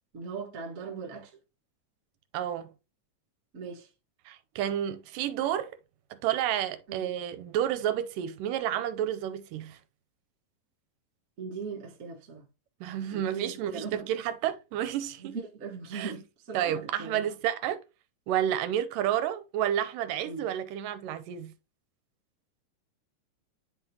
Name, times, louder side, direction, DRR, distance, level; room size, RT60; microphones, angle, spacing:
voice 1, 0.1-1.3 3.5-3.9 6.9-7.1 11.4-12.4 13.1-14.0 15.2-17.3 20.2-20.5, right 5 dB, 50° right, 1.0 m, -39 dB
voice 2, 2.3-2.7 4.3-5.8 6.1-9.8 12.8-15.4 15.9-16.1 16.5-17.8 18.3-21.5, right 11 dB, 80° right, 2.2 m, -30 dB
10.0 x 3.8 x 2.9 m
omnidirectional pair, 3.9 m